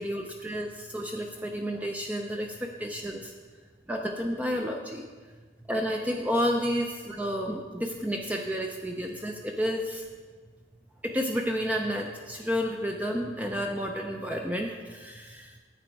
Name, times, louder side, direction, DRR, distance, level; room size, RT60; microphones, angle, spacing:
voice 1, 0.0-3.3 3.9-5.0 5.7-10.1 11.0-15.5, equal, 10° right, 1 dB, 0.6 m, -31 dB
10.0 x 8.6 x 4.6 m, 1.4 s
head